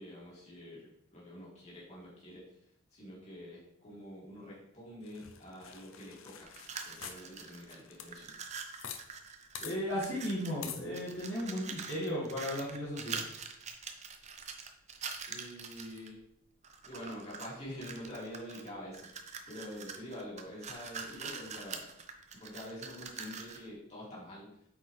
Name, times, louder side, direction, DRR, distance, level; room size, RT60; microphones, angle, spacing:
voice 1, 0.0-6.5 6.8-8.4 15.3-16.2 16.8-21.9 22.4-24.7, equal, 35° left, -6 dB, 2.7 m, -47 dB
sound 1, 5.1-9.0 9.3-9.4 9.6-9.8 10.6-10.9, left 8 dB, 90° left, 0.6 m, -46 dB
sound 2, 6.5-7.8 8.0-10.6 10.9-16.1 16.6-17.5 17.8-23.7, right 5 dB, 35° right, 0.6 m, -44 dB
voice 2, 9.6-13.2, equal, 60° left, -7 dB, 1.9 m, -35 dB
8.2 x 4.7 x 3.3 m, 0.75 s
head